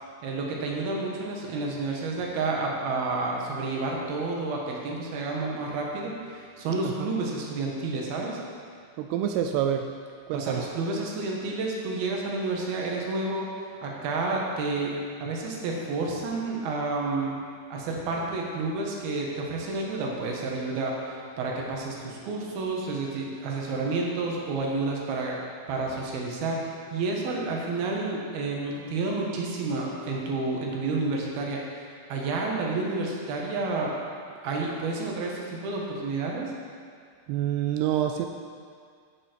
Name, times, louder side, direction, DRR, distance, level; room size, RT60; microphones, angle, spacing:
voice 1, 0.2-8.4 10.3-13.5 13.8-17.4 17.7-25.4 25.7-34.0 34.4-36.5, right 3 dB, 65° right, -1 dB, 3.1 m, -30 dB
voice 2, 9.0-9.9 10.3-10.7 37.3-38.3, right 10 dB, 85° right, 5 dB, 2.3 m, -27 dB
12.0 x 8.7 x 4.5 m, 2.1 s
omnidirectional pair, 5.0 m